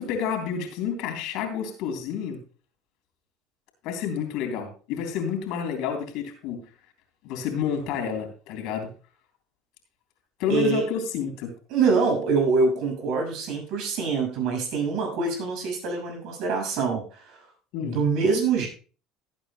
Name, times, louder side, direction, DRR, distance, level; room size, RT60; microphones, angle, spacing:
voice 1, 0.0-2.4 3.8-6.6 7.2-8.9 10.4-11.5 17.7-18.0, left 7 dB, 70° left, 5 dB, 3.4 m, -29 dB
voice 2, 10.5-10.8 11.7-17.2 17.8-18.7, right 4 dB, 65° right, 2 dB, 6.2 m, -24 dB
18.0 x 8.9 x 2.2 m, 0.37 s
supercardioid pair, 90°, 0 cm